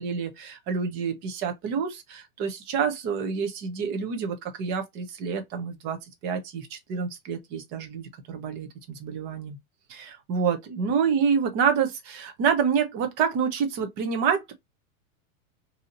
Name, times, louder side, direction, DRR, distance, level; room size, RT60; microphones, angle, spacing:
voice 1, 0.0-9.6 9.9-14.5, right 6 dB, 25° right, 0.6 m, -28 dB
2.7 x 2.7 x 3.8 m
supercardioid pair, 160°, 43 cm